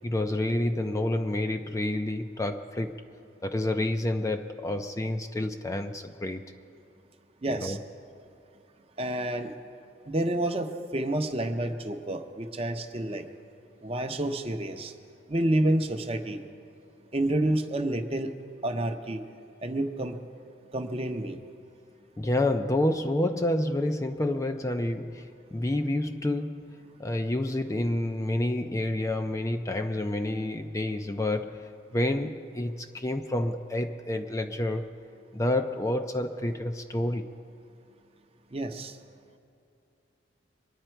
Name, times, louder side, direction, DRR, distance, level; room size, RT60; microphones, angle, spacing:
voice 1, 0.0-3.0 3.4-6.5 7.5-7.8 22.2-34.9 35.3-37.3, left 1 dB, 15° left, 6 dB, 0.4 m, -29 dB
voice 2, 7.4-7.8 9.0-9.5 10.1-13.2 13.8-14.9 15.3-16.4 17.1-18.3 18.6-19.2 19.6-20.2 20.7-21.4 38.5-39.0, right 1 dB, 30° right, 6 dB, 0.7 m, -29 dB
23.0 x 9.9 x 4.5 m, 2.6 s
head